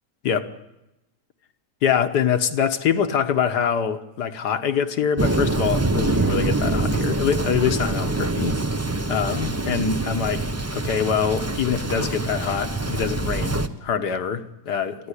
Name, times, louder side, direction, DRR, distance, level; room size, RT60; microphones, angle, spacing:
voice 1, 1.8-8.6 9.1-10.5 10.7-15.1, left 7 dB, 80° left, 1.8 m, -24 dB
Thunder, 5.2-13.7, right 2 dB, 25° right, 0.3 m, -25 dB
28.0 x 11.0 x 9.9 m
omnidirectional pair, 1.7 m